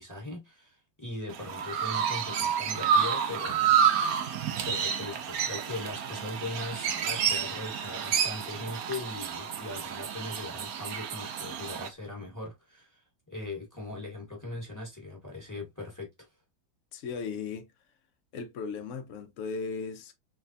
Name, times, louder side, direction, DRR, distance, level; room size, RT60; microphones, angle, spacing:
voice 1, 0.0-3.8 4.6-16.3, left 2 dB, 15° left, 0.8 m, -40 dB
Chirp tweet, 1.3-11.9, right 7 dB, 70° right, 0.9 m, -29 dB
voice 2, 16.9-17.7 18.3-20.1, left 5 dB, 70° left, 0.7 m, -36 dB
3.3 x 3.3 x 2.6 m
omnidirectional pair, 2.1 m